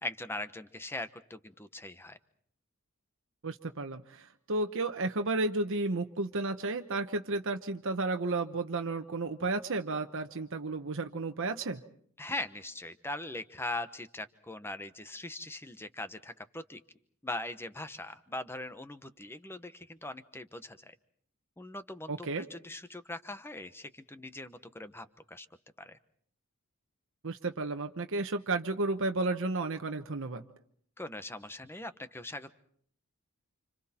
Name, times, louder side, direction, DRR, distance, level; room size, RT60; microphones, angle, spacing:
voice 1, 0.0-2.2 12.2-16.8 17.2-20.9 21.6-25.5 25.8-26.0 31.0-32.5, left 2 dB, 10° left, 11 dB, 1.1 m, -41 dB
voice 2, 3.4-11.8 22.1-22.4 27.2-30.4, right 2 dB, 65° right, 5 dB, 1.1 m, -32 dB
30.0 x 27.0 x 4.4 m, 0.62 s
head